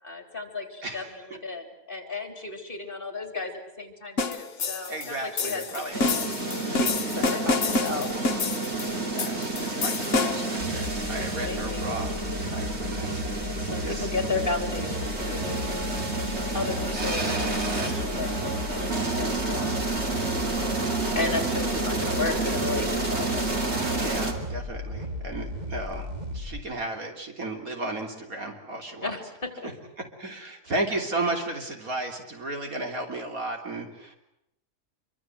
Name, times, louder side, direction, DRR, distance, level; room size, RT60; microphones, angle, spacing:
voice 1, 0.0-5.6 5.9-6.2 6.7-8.1 11.4-11.9 13.6-15.6 16.5-17.4 17.7-19.9 21.1-23.3 29.0-29.7, left 3 dB, 35° left, 6 dB, 4.0 m, -34 dB
voice 2, 0.8-1.2 4.9-6.0 7.0-7.4 8.9-14.1 23.9-29.1 30.0-34.2, right 2 dB, 65° right, 3 dB, 3.7 m, -34 dB
sound 1, 4.2-10.6, left 3 dB, 55° left, 1.7 m, -28 dB
sound 2, 5.9-24.3, right 2 dB, 45° right, 3.3 m, -30 dB
sound 3, 10.6-26.6, left 1 dB, 25° right, 2.8 m, -35 dB
26.5 x 24.5 x 7.8 m, 0.81 s
omnidirectional pair, 1.6 m